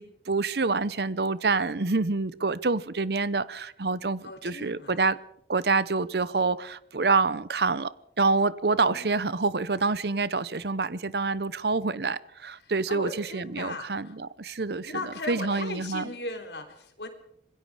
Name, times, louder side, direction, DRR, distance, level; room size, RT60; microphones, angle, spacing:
voice 1, 0.0-5.2 5.5-15.0 15.3-16.1, right 3 dB, 65° right, 0.8 m, -27 dB
voice 2, 4.2-5.0 8.9-9.1 12.6-14.2 14.8-17.1, left 2 dB, 75° left, 3.7 m, -38 dB
26.0 x 21.5 x 5.0 m
head